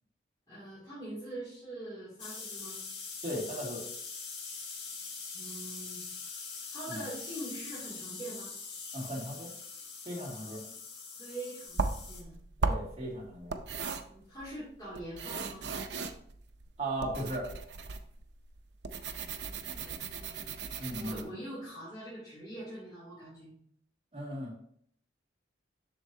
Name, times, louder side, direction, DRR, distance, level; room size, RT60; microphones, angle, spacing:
voice 1, 0.5-2.8 5.3-6.0 6.7-8.5 10.4-10.7 11.2-12.4 14.1-15.7 19.2-19.3 19.6-20.5 20.9-23.6, right 1 dB, 20° left, -11 dB, 2.7 m, -44 dB
sound 1, 2.2-12.2, left 5 dB, 70° left, 1.6 m, -43 dB
voice 2, 3.2-3.8 6.9-7.0 8.9-9.5 10.1-10.6 12.6-13.6 16.8-17.5 20.8-21.3 24.1-24.5, right 1 dB, 30° right, -6 dB, 2.2 m, -37 dB
sound 2, 11.7-21.2, right 4 dB, 70° right, 0.6 m, -37 dB
8.0 x 6.2 x 2.7 m, 0.64 s
head